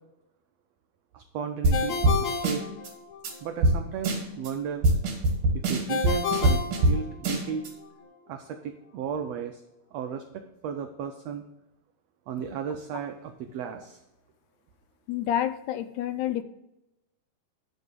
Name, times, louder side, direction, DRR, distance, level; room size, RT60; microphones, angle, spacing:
voice 1, 1.1-2.7 3.4-4.9 5.5-7.7 8.3-9.6 9.9-11.4 12.3-14.0, right 7 dB, 85° right, 6 dB, 1.4 m, -35 dB
sound 1, 1.6-1.8 2.0-2.2 2.4-2.9 3.2-3.3 3.6-3.8 4.0-4.5 4.8-7.0 7.2-7.7, right 1 dB, 70° right, 3.3 m, -23 dB
Ringtone, 1.7-3.4 5.9-7.6, left 5 dB, 50° left, 1.4 m, -31 dB
voice 2, 15.1-16.4, left 11 dB, 80° left, 11 dB, 2.0 m, -28 dB
10.5 x 4.0 x 6.7 m, 0.90 s
omnidirectional pair, 3.7 m